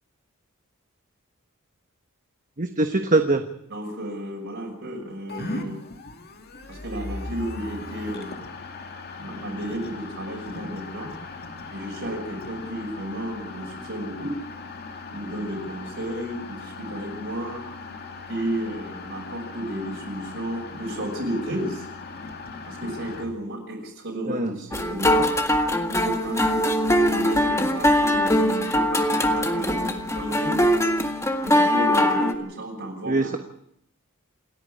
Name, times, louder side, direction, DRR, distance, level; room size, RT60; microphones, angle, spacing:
voice 1, 2.6-3.4 24.3-24.5 33.1-33.4, right 2 dB, 35° right, 6 dB, 1.3 m, -22 dB
voice 2, 3.7-5.8 6.7-8.4 9.2-11.1 11.7-14.4 15.1-17.6 18.3-21.9 22.7-25.2 25.9-26.6 27.1-30.6 31.4-33.4, right 1 dB, 60° right, -2 dB, 6.1 m, -32 dB
sound 1, 5.3-23.3, left 3 dB, 45° left, 2.5 m, -38 dB
sound 2, 24.7-32.3, left 1 dB, 15° left, 1.8 m, -22 dB
28.0 x 9.8 x 9.9 m, 0.74 s
head